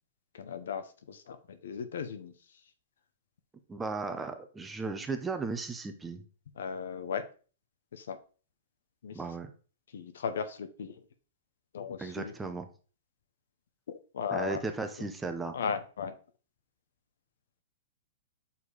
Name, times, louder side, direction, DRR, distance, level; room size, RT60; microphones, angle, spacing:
voice 1, 0.3-2.3 6.6-7.2 7.9-8.2 9.0-9.2 9.9-10.9 11.7-12.3 13.9-14.6 15.5-16.1, left 6 dB, 80° left, 10 dB, 1.0 m, -36 dB
voice 2, 3.7-6.2 9.1-9.5 12.0-12.7 14.3-15.5, right 4 dB, 10° right, 7 dB, 0.9 m, -36 dB
5.6 x 4.6 x 4.9 m, 0.38 s
hypercardioid pair, 140°, 0 cm